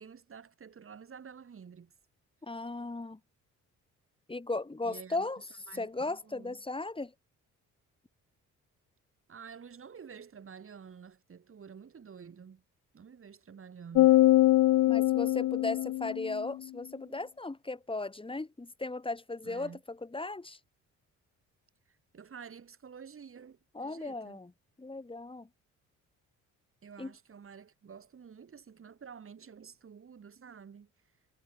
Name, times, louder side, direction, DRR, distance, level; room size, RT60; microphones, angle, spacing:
voice 1, 0.0-1.9 4.8-6.6 9.3-12.6 12.9-14.2 19.4-19.8 21.9-24.4 26.8-30.9, right 6 dB, 45° right, 7.6 m, -50 dB
voice 2, 2.4-3.2 4.3-5.4 5.7-7.1 14.9-20.6 23.7-24.5 24.8-25.5 27.0-27.1, left 2 dB, 15° left, 4.4 m, -36 dB
sound 1, 13.9-16.5, left 16 dB, 75° left, 0.6 m, -23 dB
cardioid pair, 90°, 30 cm